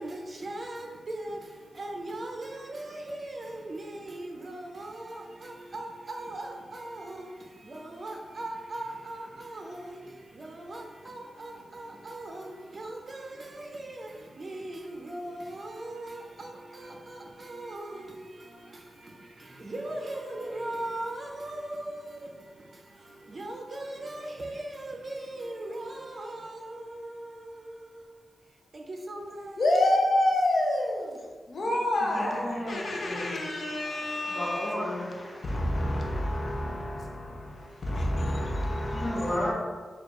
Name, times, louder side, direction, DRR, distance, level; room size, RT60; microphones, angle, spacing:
voice 1, 0.0-29.7, right 1 dB, 45° right, 0.5 m, -39 dB
voice 2, 29.6-34.7 35.4-39.5, left 1 dB, 55° left, 0.5 m, -28 dB
voice 3, 32.0-36.6 37.6-39.5, left 1 dB, 35° left, 0.9 m, -36 dB
4.4 x 2.4 x 2.9 m
wide cardioid pair, 95°, 0 cm